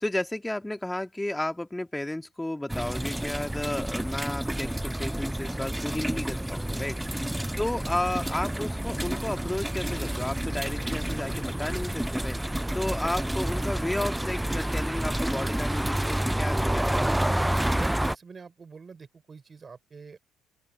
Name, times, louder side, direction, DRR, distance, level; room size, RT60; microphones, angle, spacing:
voice 1, 0.0-7.0 7.6-12.4 12.7-17.1, left 1 dB, 10° left, 2.0 m, -32 dB
sound 1, 2.7-18.2, right 1 dB, 5° right, 0.6 m, -29 dB
voice 2, 17.8-20.2, right 5 dB, 35° right, 5.2 m, -46 dB
open air
supercardioid pair, 70°, 0 cm